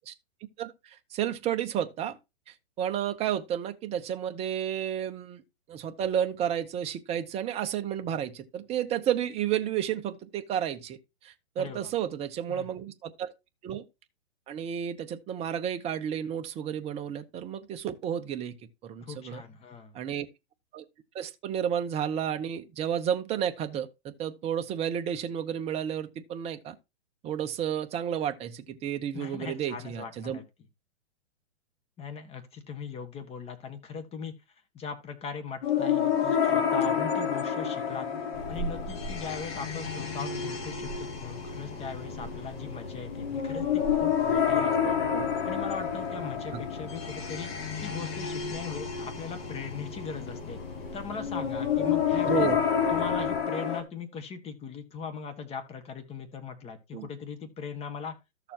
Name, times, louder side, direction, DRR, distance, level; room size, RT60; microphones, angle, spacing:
voice 1, 0.6-2.2 2.5-5.4 5.7-11.0 11.2-13.3 13.6-13.8 14.5-18.5 18.8-19.4 19.9-20.3 20.7-20.8 21.1-26.8 27.2-30.4 45.1-45.3 46.5-46.6 52.2-52.6 56.9-57.1, right 9 dB, 15° right, 0.8 m, -31 dB
voice 2, 11.6-11.9 12.5-12.7 19.0-20.0 29.1-30.4 32.0-34.3 34.7-38.1 38.5-45.0 45.4-47.5 47.8-50.6 50.9-52.5 52.9-58.2, left 6 dB, 15° left, 1.6 m, -39 dB
sound 1, 35.6-53.8, left 7 dB, 55° left, 2.8 m, -29 dB
sound 2, 38.3-53.4, left 1 dB, 30° left, 3.0 m, -41 dB
13.0 x 6.9 x 2.9 m
hypercardioid pair, 140°, 36 cm